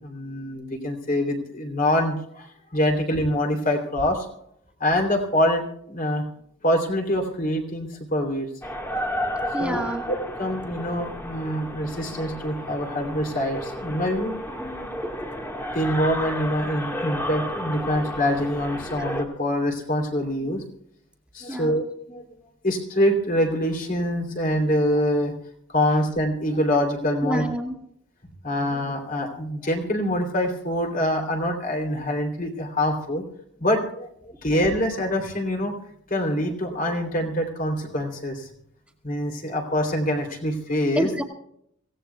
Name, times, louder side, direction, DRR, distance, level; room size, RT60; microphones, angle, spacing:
voice 1, 0.0-4.3 4.8-6.2 6.6-8.5 9.6-9.8 10.1-14.9 15.7-20.6 21.3-22.2 22.6-25.3 25.7-27.4 28.4-33.2 33.6-34.1 34.4-35.7 36.1-38.5 39.0-41.1, equal, 40° left, 3 dB, 3.0 m, -25 dB
sound 1, 8.6-19.3, equal, 10° left, 1.5 m, -32 dB
voice 2, 9.5-10.1 15.0-15.3 21.5-21.8 27.2-27.8 34.3-34.5 40.9-41.2, equal, 5° right, 1 dB, 1.8 m, -28 dB
25.5 x 17.0 x 2.3 m, 0.70 s
head